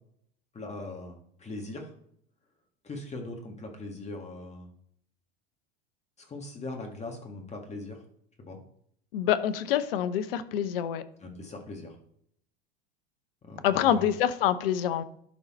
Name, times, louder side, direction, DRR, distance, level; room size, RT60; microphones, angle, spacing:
voice 1, 0.5-1.9 2.8-4.7 6.2-8.0 8.5-8.6 11.2-12.0 13.4-14.1, left 2 dB, 20° left, 2 dB, 1.7 m, -40 dB
voice 2, 9.1-11.0 13.6-15.0, left 10 dB, 60° left, 14 dB, 0.8 m, -26 dB
11.5 x 3.9 x 4.3 m, 0.67 s
hypercardioid pair, 85°, 31 cm